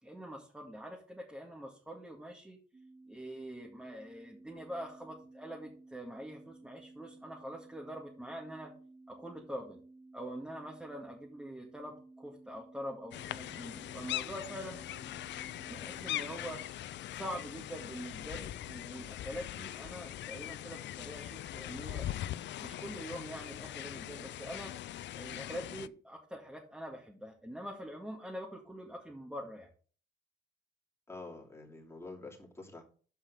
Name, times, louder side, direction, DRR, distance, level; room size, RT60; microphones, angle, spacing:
voice 1, 0.0-2.6 3.1-8.7 9.1-9.8 10.1-14.8 15.7-16.6 17.1-22.1 22.6-24.7 25.1-29.7, equal, 5° right, -1 dB, 2.1 m, -44 dB
sound 1, 2.7-16.5, right 2 dB, 20° right, 2.0 m, -56 dB
sound 2, 13.1-25.9, left 13 dB, 65° left, 0.4 m, -41 dB
voice 2, 31.1-32.8, left 3 dB, 15° left, -1 dB, 3.0 m, -47 dB
7.2 x 5.5 x 6.8 m, 0.42 s
cardioid pair, 90°, 20 cm